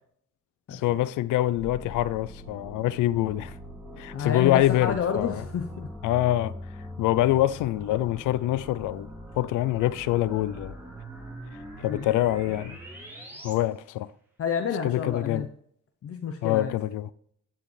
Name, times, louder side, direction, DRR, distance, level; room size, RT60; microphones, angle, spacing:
voice 1, 0.7-3.5 4.0-5.4 6.0-6.5 7.0-9.1 9.4-10.8 11.8-12.8 13.4-14.1 14.8-15.5 16.4-17.1, left 14 dB, 85° left, 0.5 m, -25 dB
sound 1, 1.6-13.5, equal, 5° right, 3.0 m, -42 dB
voice 2, 4.1-5.9 11.9-12.1 14.4-15.5 16.0-16.7, left 7 dB, 50° left, 0.8 m, -29 dB
11.5 x 4.8 x 3.2 m
cardioid pair, 90°, 30 cm